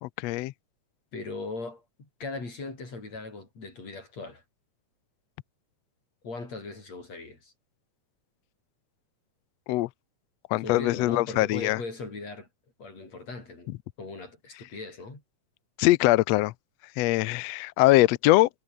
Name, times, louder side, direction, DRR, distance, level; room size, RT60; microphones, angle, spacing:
voice 1, 0.0-0.5 9.7-9.9 10.5-11.8 15.8-16.5 17.0-18.5, left 18 dB, 80° left, 1.6 m, -22 dB
voice 2, 1.1-4.4 6.2-7.5 10.5-12.5 12.8-15.2, left 3 dB, 55° left, 9.0 m, -39 dB
omnidirectional pair, 3.6 m